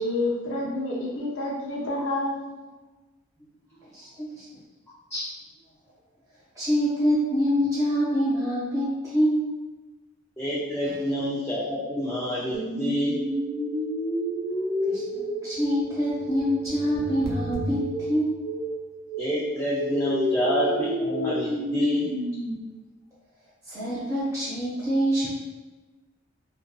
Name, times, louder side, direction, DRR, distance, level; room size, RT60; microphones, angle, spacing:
voice 1, 0.0-2.6, left 1 dB, 70° left, -3 dB, 0.5 m, -28 dB
voice 2, 3.9-4.4 6.5-9.5 10.8-10.9 14.2-14.4 14.9-18.3 23.7-25.3, equal, 15° right, -10 dB, 1.1 m, -25 dB
voice 3, 10.4-13.2 19.2-22.1, left 1 dB, 10° left, -8 dB, 0.3 m, -27 dB
sound 1, 12.5-22.5, right 1 dB, 70° right, 0.5 m, -30 dB
2.5 x 2.5 x 2.2 m, 1.2 s
head